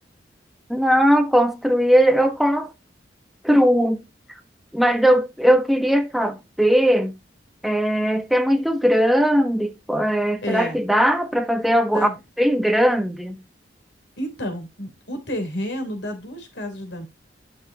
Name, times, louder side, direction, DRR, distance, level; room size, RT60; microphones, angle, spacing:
voice 1, 0.7-2.7 3.4-4.0 4.7-7.1 7.6-12.1 12.4-13.4, equal, ahead, 1.1 m, -19 dB
voice 2, 10.4-10.8 11.9-12.1 14.2-17.0, equal, 75° left, 3.5 m, -30 dB
11.5 x 6.4 x 2.9 m
head